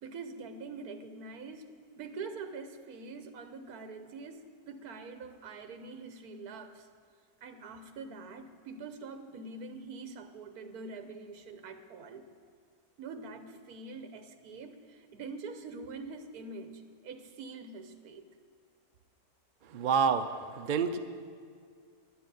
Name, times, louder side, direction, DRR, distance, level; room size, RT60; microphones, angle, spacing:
voice 1, 0.0-1.7 1.9-4.4 4.7-6.9 7.4-12.3 13.0-18.2, right 4 dB, 75° right, 8 dB, 1.4 m, -44 dB
voice 2, 19.6-21.0, right 6 dB, 60° right, 8 dB, 0.5 m, -28 dB
11.0 x 7.0 x 9.3 m, 2.1 s
omnidirectional pair, 1.6 m